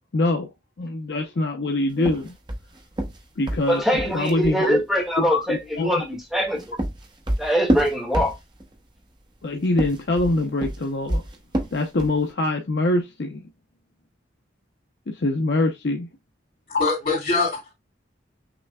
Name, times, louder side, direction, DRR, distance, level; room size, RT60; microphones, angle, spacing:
voice 1, 0.1-0.5 0.8-2.3 3.4-4.8 5.2-5.9 9.4-11.2 11.7-13.5 15.1-16.1 16.7-16.9, left 2 dB, 65° left, 0.6 m, -24 dB
sound 1, 2.0-4.6 6.3-8.7 9.6-12.2, right 1 dB, 25° right, 0.8 m, -28 dB
voice 2, 3.7-6.7 7.4-8.3, equal, 5° right, 1.7 m, -23 dB
voice 3, 16.7-17.7, left 3 dB, 50° left, 3.1 m, -24 dB
6.0 x 3.2 x 2.2 m
head